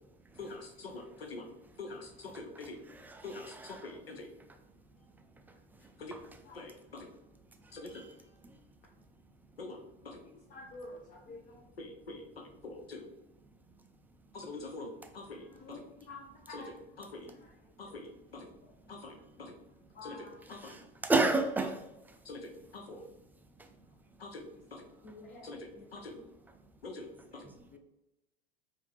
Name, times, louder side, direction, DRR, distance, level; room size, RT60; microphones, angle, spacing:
voice 1, 0.4-1.5 1.8-2.8 3.2-4.3 6.0-6.1 6.6-7.1 7.7-8.0 9.6-9.8 10.0-10.2 11.8-12.2 12.6-13.1 14.3-14.9 15.1-15.8 16.5-16.6 17.0-17.3 17.8-18.5 18.9-19.5 20.0-20.2 20.5-20.8 22.3-23.0 24.2-24.8 25.4-25.6 25.9-26.2 26.8-27.1 27.3-27.4, left 3 dB, 90° left, 0.8 m, -45 dB
voice 2, 3.1-3.8 21.0-21.8, right 3 dB, 5° right, 0.3 m, -29 dB
voice 3, 10.2-11.6 15.2-16.7 17.3-17.6 17.9-18.0 19.9-20.4 25.0-25.5 25.7-25.8 27.7-27.8, left 2 dB, 25° left, 0.8 m, -50 dB
4.8 x 2.6 x 3.3 m
figure-of-eight pair, 85°, 29 cm